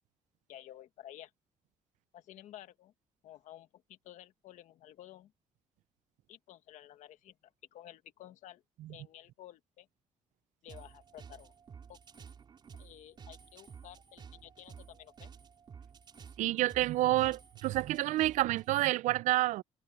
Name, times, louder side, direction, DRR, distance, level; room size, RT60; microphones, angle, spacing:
voice 1, 0.5-1.3 2.1-2.9 3.2-5.3 6.3-8.6 8.9-9.9 10.6-11.5 11.9-12.0 12.8-15.3, left 12 dB, 80° left, 1.6 m, -53 dB
sound 1, 10.7-18.7, right 6 dB, 40° right, 4.9 m, -52 dB
voice 2, 16.4-19.6, right 16 dB, 85° right, 0.4 m, -29 dB
cardioid pair, 155°, 12 cm